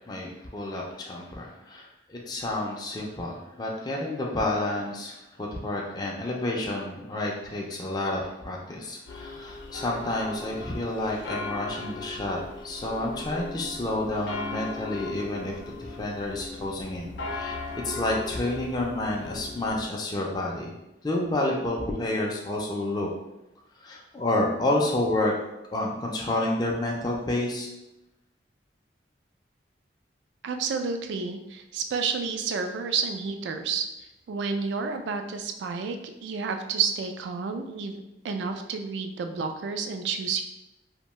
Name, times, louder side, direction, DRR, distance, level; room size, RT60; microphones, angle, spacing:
voice 1, 0.1-20.7 21.0-23.1 23.8-25.3 25.7-27.7, left 1 dB, 25° left, -1 dB, 0.4 m, -30 dB
sound 1, 9.1-19.9, left 3 dB, 90° left, 0.4 m, -38 dB
voice 2, 30.4-33.8 34.3-40.4, right 5 dB, 85° right, 6 dB, 0.3 m, -30 dB
2.6 x 2.2 x 3.0 m, 0.92 s
head